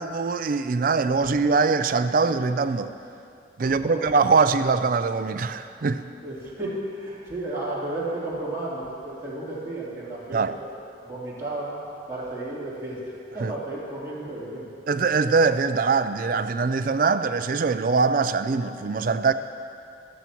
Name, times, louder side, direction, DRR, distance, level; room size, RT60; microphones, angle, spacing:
voice 1, 0.0-2.9 3.6-6.0 10.3-10.6 13.4-13.5 14.9-19.3, right 4 dB, 50° right, 0.4 m, -22 dB
voice 2, 3.6-4.0 6.2-10.7 11.0-11.8 12.1-14.6, right 2 dB, 15° right, 3.2 m, -33 dB
13.5 x 12.5 x 3.0 m
head